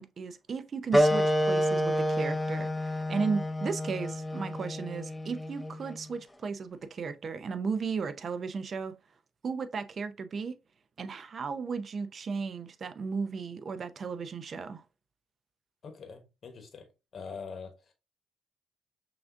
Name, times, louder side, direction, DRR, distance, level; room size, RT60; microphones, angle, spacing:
voice 1, 0.0-8.9 9.4-10.6 11.0-14.8, right 5 dB, 45° right, 0.5 m, -35 dB
sound 1, 0.9-6.0, equal, 5° left, 0.5 m, -28 dB
voice 2, 15.8-16.9 17.1-17.9, left 5 dB, 50° left, 1.0 m, -43 dB
5.9 x 2.5 x 2.5 m
cardioid pair, 90°, 0 cm